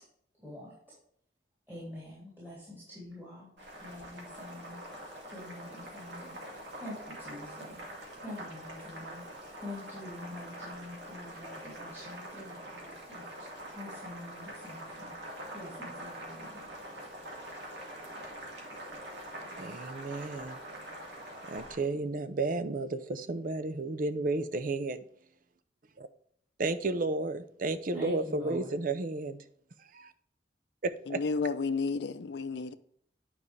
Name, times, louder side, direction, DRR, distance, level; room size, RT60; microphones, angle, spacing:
voice 1, 0.4-0.7 1.7-3.5 3.8-4.8 5.3-6.4 6.7-7.8 8.2-9.2 9.6-15.1 15.5-16.7 27.9-28.7, left 1 dB, 15° right, 3.0 m, -45 dB
Boiling, 3.6-21.8, right 1 dB, 75° right, 2.4 m, -44 dB
voice 2, 19.6-20.6 21.5-25.0 26.6-29.4 29.9-30.1 30.8-31.2, right 3 dB, 50° right, 0.6 m, -32 dB
voice 3, 31.1-32.7, left 4 dB, 75° left, 0.5 m, -32 dB
9.7 x 5.4 x 3.3 m
head